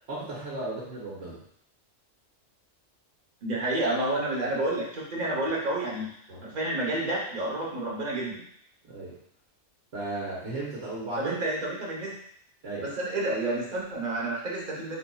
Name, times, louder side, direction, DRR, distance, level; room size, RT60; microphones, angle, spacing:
voice 1, 0.1-1.4 6.3-6.5 8.9-9.2 9.9-11.4 12.6-12.9, right 2 dB, 70° right, -6 dB, 1.4 m, -35 dB
voice 2, 3.4-6.1 6.4-8.4 11.2-12.1 12.8-15.0, right 2 dB, 40° right, -3 dB, 1.1 m, -29 dB
4.2 x 4.0 x 2.3 m, 0.67 s
omnidirectional pair, 1.3 m